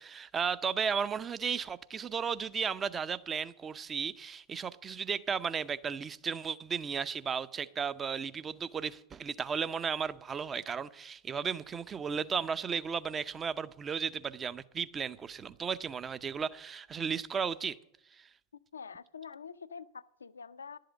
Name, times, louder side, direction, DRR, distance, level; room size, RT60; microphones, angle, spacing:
voice 1, 0.0-17.8 18.2-18.3, right 6 dB, 25° right, 0.6 m, -34 dB
voice 2, 18.7-20.8, left 6 dB, 80° left, 0.5 m, -46 dB
11.5 x 7.7 x 9.2 m
figure-of-eight pair, 90°, 0 cm